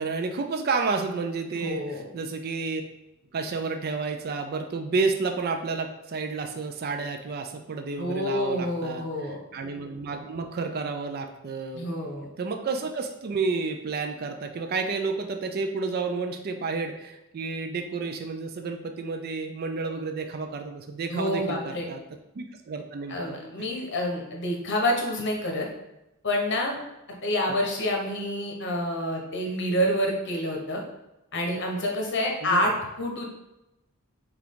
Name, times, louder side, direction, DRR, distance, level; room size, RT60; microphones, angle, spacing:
voice 1, 0.0-2.8 3.3-11.9 12.4-22.0 22.4-23.4 27.5-27.6 32.4-32.6, right 4 dB, 45° right, 5 dB, 0.4 m, -31 dB
voice 2, 1.5-2.1 8.0-9.4 11.7-12.3 21.1-21.9 23.1-25.7 26.2-26.8 27.2-30.8 31.3-33.3, left 1 dB, 55° left, 0 dB, 1.0 m, -28 dB
5.8 x 2.4 x 3.7 m, 0.93 s
head